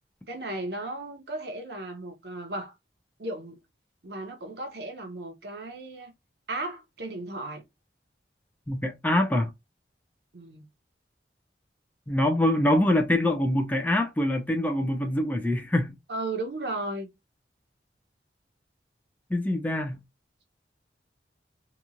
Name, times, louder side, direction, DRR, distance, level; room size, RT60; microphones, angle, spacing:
voice 1, 0.3-2.7 3.2-3.6 4.0-6.1 6.5-7.6 10.3-10.7 16.1-17.1, right 2 dB, 65° right, 0.8 m, -35 dB
voice 2, 8.7-9.5 12.1-15.9 19.3-20.0, left 1 dB, 10° left, 0.4 m, -24 dB
2.9 x 2.3 x 2.5 m
head